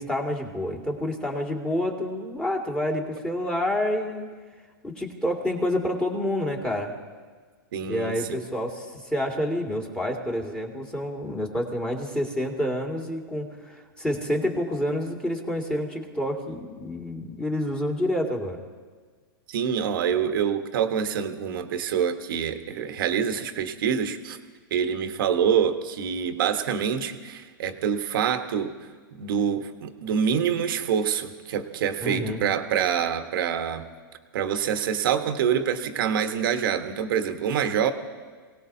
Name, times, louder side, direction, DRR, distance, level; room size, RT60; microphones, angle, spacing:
voice 1, 0.0-4.3 4.8-6.9 7.8-18.6 32.0-32.4, left 1 dB, 5° left, 0 dB, 2.3 m, -28 dB
voice 2, 7.7-8.4 19.5-24.4 24.7-28.7 29.1-33.8 34.3-37.9, right 8 dB, 65° right, 7 dB, 1.3 m, -26 dB
28.5 x 18.5 x 2.8 m, 1.5 s
hypercardioid pair, 130°, 12 cm